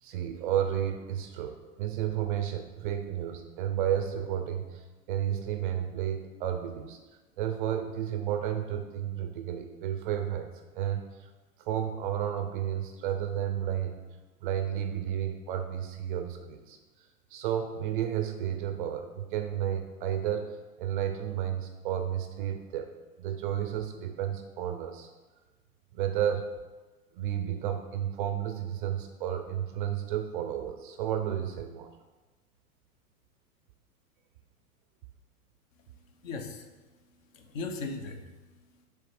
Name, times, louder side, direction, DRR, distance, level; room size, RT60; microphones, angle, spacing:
voice 1, 0.0-7.0 7.4-10.5 10.7-11.3 11.6-14.0 14.4-16.8 17.3-25.1 25.9-26.5 27.1-31.9, right 10 dB, 35° right, 7 dB, 0.4 m, -32 dB
voice 2, 36.1-36.7 37.3-38.9, left 3 dB, 55° left, 6 dB, 0.9 m, -39 dB
6.9 x 3.3 x 4.8 m, 1.2 s
hypercardioid pair, 105°, 46 cm